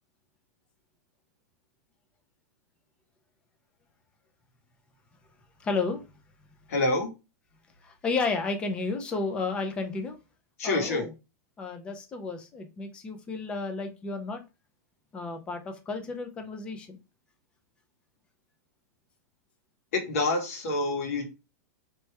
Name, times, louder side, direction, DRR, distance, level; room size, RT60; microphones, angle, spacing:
voice 1, 5.6-6.0 7.8-10.2 10.6-11.1 11.6-14.4 15.1-17.0, left 4 dB, 10° left, 0.4 m, -32 dB
voice 2, 6.7-7.1 10.6-11.0 19.9-21.3, left 2 dB, 55° left, 1.4 m, -27 dB
3.2 x 2.9 x 4.5 m
supercardioid pair, 180°, 9 cm